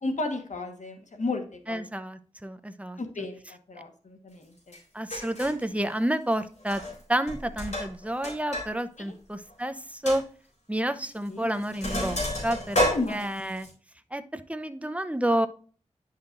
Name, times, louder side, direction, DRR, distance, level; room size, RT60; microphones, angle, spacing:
voice 1, 0.0-1.8 3.0-4.8 9.0-9.1 11.3-11.5 12.8-13.6, left 3 dB, 80° left, 5 dB, 1.4 m, -33 dB
voice 2, 1.7-3.0 4.9-6.8 7.1-10.2 10.7-12.2 12.4-12.8 13.1-13.7 14.1-15.5, right 1 dB, 10° right, 9 dB, 0.8 m, -29 dB
Sink (filling or washing), 4.7-4.8 5.1-5.6 6.6-7.0 7.3-8.7 9.0-9.1 9.5-9.6 10.1-10.2 11.1-11.3 11.5-13.7, equal, 65° left, 3.9 m, -30 dB
10.0 x 5.8 x 2.5 m, 0.41 s
cardioid pair, 45°, 12 cm